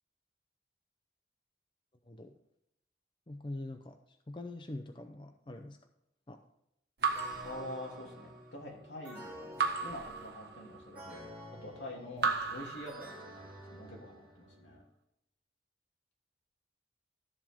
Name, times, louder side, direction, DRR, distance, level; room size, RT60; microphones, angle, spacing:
voice 1, 2.1-2.4 3.3-5.8 6.3-6.4, left 2 dB, 30° left, 6 dB, 0.6 m, -44 dB
Raindrop / Drip, 7.0-8.4 9.6-11.0 12.2-13.6, right 5 dB, 65° right, 1.4 m, -35 dB
sound 1, 7.1-14.8, equal, 10° right, 3.1 m, -51 dB
voice 2, 7.4-9.6 9.8-11.3 11.6-14.8, left 1 dB, 85° left, -1 dB, 2.8 m, -46 dB
13.5 x 7.5 x 3.6 m, 0.79 s
head